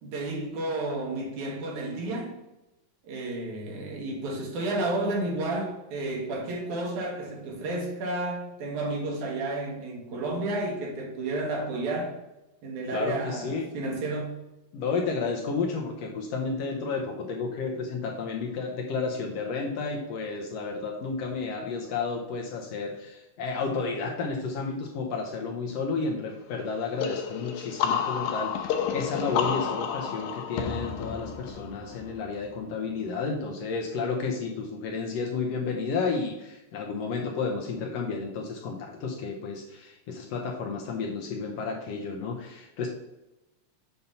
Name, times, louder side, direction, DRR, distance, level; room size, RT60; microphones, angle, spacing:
voice 1, 0.0-2.4 3.0-12.1 12.6-14.4, right 2 dB, 80° right, 0 dB, 2.7 m, -31 dB
voice 2, 12.9-13.6 14.7-42.9, left 4 dB, 75° left, 1 dB, 1.6 m, -32 dB
sound 1, 27.0-32.6, left 7 dB, 90° left, 2.2 m, -31 dB
6.9 x 2.7 x 5.4 m, 0.97 s
omnidirectional pair, 3.4 m